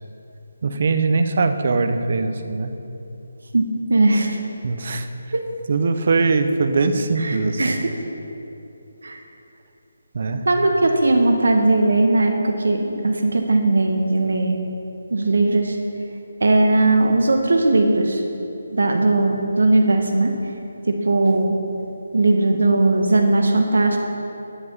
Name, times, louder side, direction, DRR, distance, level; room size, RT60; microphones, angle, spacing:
voice 1, 0.6-2.7 4.6-5.1 5.7-7.8 10.1-10.5, right 4 dB, 35° right, 8 dB, 0.6 m, -21 dB
voice 2, 3.9-4.4 5.3-5.4 7.2-7.8 9.0-9.2 10.5-14.6 15.1-15.8 16.4-18.2 18.7-20.3 20.9-21.6 22.1-24.0, right 2 dB, 80° right, 3 dB, 1.1 m, -18 dB
11.0 x 5.8 x 7.2 m, 2.9 s
hypercardioid pair, 180°, 0 cm